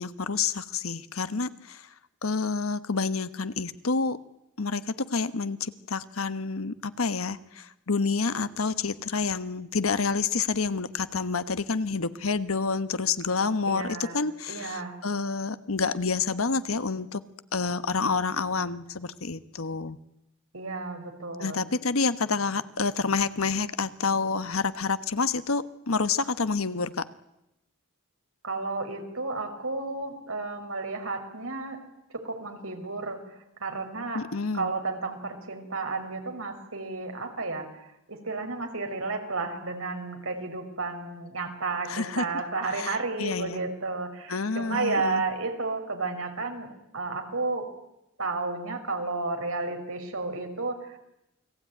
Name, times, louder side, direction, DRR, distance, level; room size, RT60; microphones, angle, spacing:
voice 1, 0.0-1.9 2.2-4.2 4.6-17.2 17.5-20.0 21.4-27.0 34.1-34.7 41.9-42.3 42.8-43.6 44.3-45.2, left 4 dB, 90° left, 12 dB, 1.2 m, -28 dB
voice 2, 13.6-14.2 14.5-15.0 20.5-21.6 28.4-31.8 32.1-33.2 33.6-34.2 34.5-37.7 38.1-47.6 48.2-51.0, right 3 dB, 80° right, 5 dB, 5.0 m, -32 dB
29.0 x 20.5 x 9.3 m, 0.88 s
head